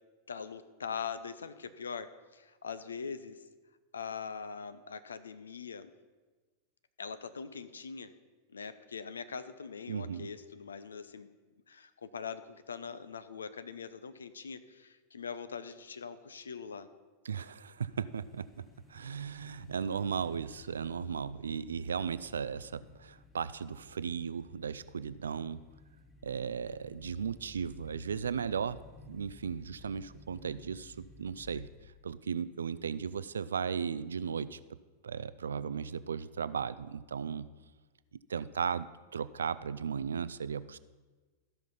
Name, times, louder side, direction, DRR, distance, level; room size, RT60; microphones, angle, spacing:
voice 1, 0.3-3.4 3.9-5.9 7.0-8.1 8.5-11.3 11.7-16.9 20.9-21.3, left 6 dB, 70° left, 12 dB, 0.5 m, -42 dB
voice 2, 9.9-10.3 17.3-18.6 18.9-25.6 26.2-31.7 32.0-34.6 35.0-37.5 38.3-38.9 39.1-40.8, right 6 dB, 70° right, 16 dB, 0.3 m, -36 dB
sound 1, 17.8-32.0, left 3 dB, 15° left, 1.5 m, -56 dB
14.0 x 5.8 x 5.5 m, 1.3 s
figure-of-eight pair, 90°, 0 cm